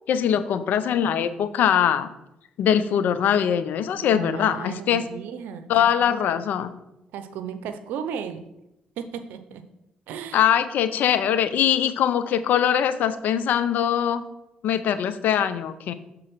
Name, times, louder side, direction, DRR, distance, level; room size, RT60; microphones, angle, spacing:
voice 1, 0.1-2.1 2.6-5.0 5.7-6.7 10.3-14.2 14.6-15.9, left 9 dB, 70° left, 13 dB, 0.5 m, -22 dB
voice 2, 4.0-6.4 7.1-8.5 9.0-9.6 10.1-10.4, right 7 dB, 80° right, 9 dB, 0.6 m, -35 dB
6.6 x 3.8 x 5.9 m, 0.87 s
supercardioid pair, 60°, 3 cm